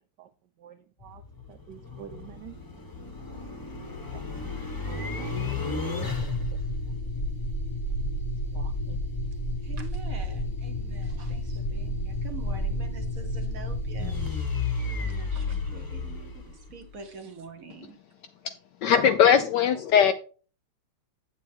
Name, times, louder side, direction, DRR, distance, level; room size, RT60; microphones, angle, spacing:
voice 1, 0.6-1.2 1.5-2.5 4.1-4.2 4.8-6.6 6.9-7.3 8.5-9.0, right 10 dB, 75° right, 1.0 m, -47 dB
sound 1, 1.0-17.0, left 2 dB, 15° left, 0.8 m, -32 dB
voice 2, 9.6-14.5 15.0-17.9, right 4 dB, 50° right, 1.2 m, -45 dB
voice 3, 18.8-20.1, left 8 dB, 75° left, 1.0 m, -19 dB
8.2 x 7.9 x 3.5 m
omnidirectional pair, 2.3 m